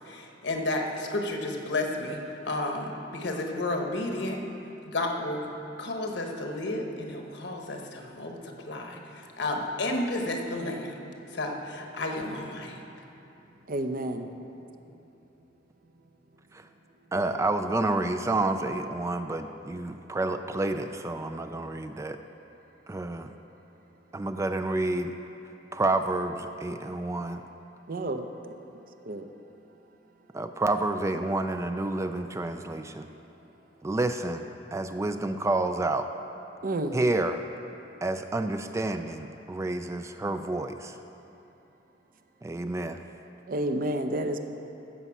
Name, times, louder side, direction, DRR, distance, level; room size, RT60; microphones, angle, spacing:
voice 1, 0.0-4.4 4.8-5.5 5.8-11.0 11.3-12.8, left 2 dB, 70° left, 2 dB, 1.2 m, -32 dB
voice 2, 13.7-14.3 27.9-28.5 29.1-29.2 36.6-37.0 43.5-44.4, right 1 dB, 50° right, 7 dB, 0.6 m, -30 dB
voice 3, 17.1-22.2 22.9-23.3 24.1-25.1 25.7-27.4 30.3-33.1 33.8-36.1 36.9-37.4 38.0-41.0 42.4-43.0, right 2 dB, 15° right, 8 dB, 0.3 m, -29 dB
14.0 x 5.5 x 7.2 m, 2.9 s
head